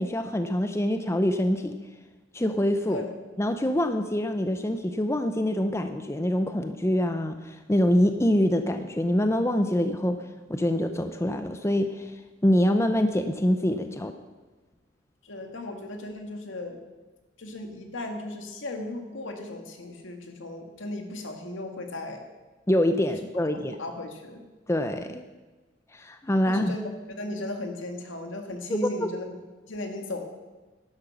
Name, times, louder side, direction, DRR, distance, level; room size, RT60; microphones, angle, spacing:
voice 1, 0.0-1.8 2.3-3.0 3.4-12.2 12.4-14.1 22.7-23.8 24.7-25.2 25.9-26.7 28.7-29.1, left 1 dB, 15° left, 8 dB, 0.6 m, -25 dB
voice 2, 15.2-16.8 17.4-22.3 23.5-24.4 26.5-26.8 27.2-29.4 29.6-30.2, left 2 dB, 80° left, 4 dB, 2.0 m, -36 dB
12.0 x 11.0 x 6.1 m, 1.2 s
head